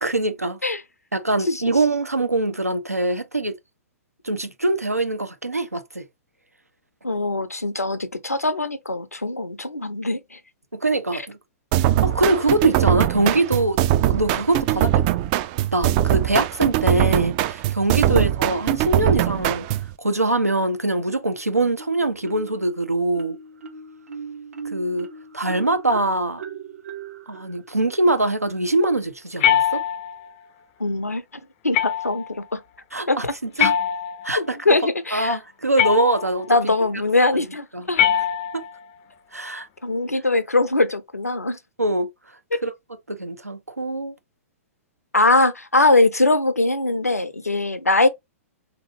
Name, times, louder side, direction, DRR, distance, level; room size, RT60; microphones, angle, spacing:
voice 1, 0.0-0.6 1.1-3.6 4.2-6.0 10.8-11.4 11.9-13.8 14.1-15.0 15.7-19.7 20.0-23.4 24.7-25.1 25.3-26.4 27.3-29.8 32.9-33.7 34.2-34.6 35.1-36.7 37.3-37.4 37.7-37.8 38.5-38.6 39.3-39.7 41.8-42.1 42.6-42.7 43.1-44.1, right 2 dB, 90° right, 0.7 m, -23 dB
voice 2, 7.0-10.4 18.1-18.3 30.8-31.2 31.6-32.2 32.5-32.6 33.1-33.3 34.4-35.4 36.5-38.0 39.8-41.6 45.1-48.1, left 2 dB, 85° left, 0.6 m, -21 dB
sound 1, 11.7-19.9, right 13 dB, 35° right, 0.3 m, -21 dB
Marimba xylophone, 21.8-22.7 23.1-28.7, right 5 dB, 70° right, 1.0 m, -39 dB
sound 2, 29.4-30.3 31.7-32.3 33.6-34.5 35.8-36.5 37.9-38.8, left 10 dB, 40° left, 0.4 m, -22 dB
3.7 x 3.0 x 2.9 m
figure-of-eight pair, 110°, 8 cm